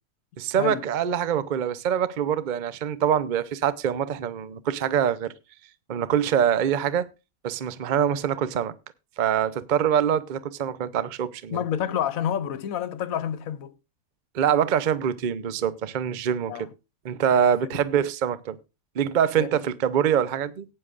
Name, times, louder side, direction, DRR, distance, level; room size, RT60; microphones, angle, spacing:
voice 1, 0.4-5.3 5.9-7.1 7.4-8.7 9.2-11.6 14.3-16.7 17.0-18.6 19.0-20.7, right 9 dB, 45° right, 0.6 m, -24 dB
voice 2, 11.5-13.7 16.5-16.7 17.4-17.5 19.4-19.6, left 9 dB, 75° left, 1.2 m, -28 dB
17.0 x 9.7 x 2.4 m
omnidirectional pair, 1.5 m